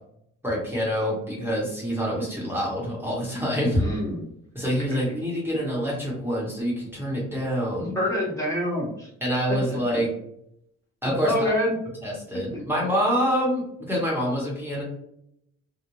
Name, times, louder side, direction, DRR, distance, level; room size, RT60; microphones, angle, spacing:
voice 1, 0.4-3.8 4.5-7.9 9.2-10.1 11.0-11.4 12.0-14.8, equal, 5° right, -4 dB, 1.0 m, -26 dB
voice 2, 3.8-4.2 4.9-5.0 7.9-9.1 11.2-11.7, left 1 dB, 10° left, -4 dB, 1.2 m, -26 dB
2.4 x 2.1 x 3.0 m, 0.75 s
cardioid pair, 90°, 30 cm